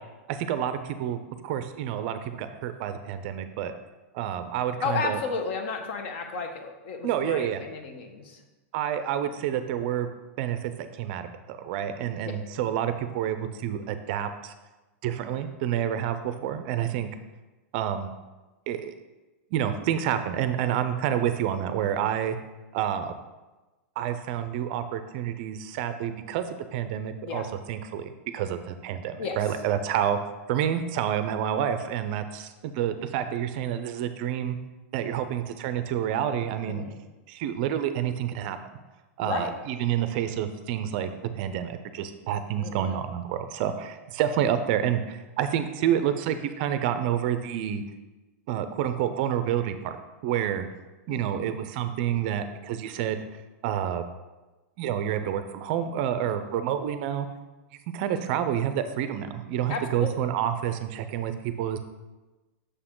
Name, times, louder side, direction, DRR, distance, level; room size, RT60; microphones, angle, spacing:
voice 1, 0.3-3.7 4.1-5.2 7.0-7.6 8.7-10.1 10.4-10.7 11.0-14.5 15.0-17.1 17.7-18.1 18.7-18.9 19.5-22.4 22.7-23.1 24.0-26.5 26.7-30.2 30.5-34.6 34.9-36.8 37.3-38.6 39.2-41.1 41.4-47.8 48.5-50.0 50.2-50.7 51.1-53.2 53.6-54.0 54.8-57.3 57.9-61.8, right 10 dB, 45° right, 10 dB, 0.4 m, -28 dB
voice 2, 4.8-8.4 27.2-27.4 29.2-29.4 36.7-36.9 39.2-39.5 42.6-43.0 51.1-51.5 56.3-56.4 59.7-60.2, left 4 dB, 50° left, 5 dB, 0.9 m, -33 dB
6.6 x 4.8 x 3.7 m, 1.1 s
supercardioid pair, 160°, 8 cm